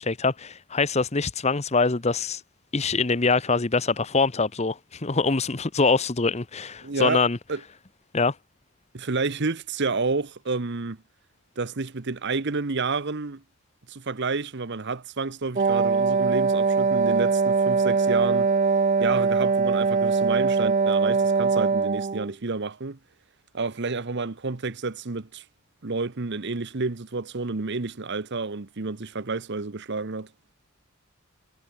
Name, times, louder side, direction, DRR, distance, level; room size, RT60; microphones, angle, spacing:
voice 1, 0.0-2.4 2.7-7.4 8.1-8.3, left 4 dB, 30° left, 0.9 m, -24 dB
voice 2, 6.8-7.2 7.5-7.6 8.9-11.0 11.6-13.4 13.9-18.5 19.0-23.0 23.5-25.4 25.8-30.3, right 3 dB, 50° right, 0.9 m, -30 dB
Wind instrument woodwind instrument, 15.6-22.3, right 4 dB, 35° right, 0.5 m, -22 dB
head